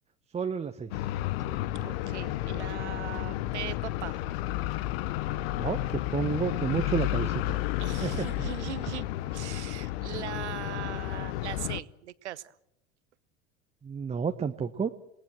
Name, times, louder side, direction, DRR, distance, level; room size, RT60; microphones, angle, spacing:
voice 1, 0.3-1.1 5.5-7.6 8.0-8.3 13.8-14.9, right 6 dB, 20° right, 7 dB, 1.1 m, -31 dB
sound 1, 0.9-11.8, left 15 dB, 55° left, 1.0 m, -32 dB
voice 2, 1.7-4.2 7.8-9.1 9.3-12.5, right 13 dB, 70° right, 18 dB, 1.0 m, -39 dB
28.0 x 19.0 x 7.7 m, 0.80 s
figure-of-eight pair, 75°, 36 cm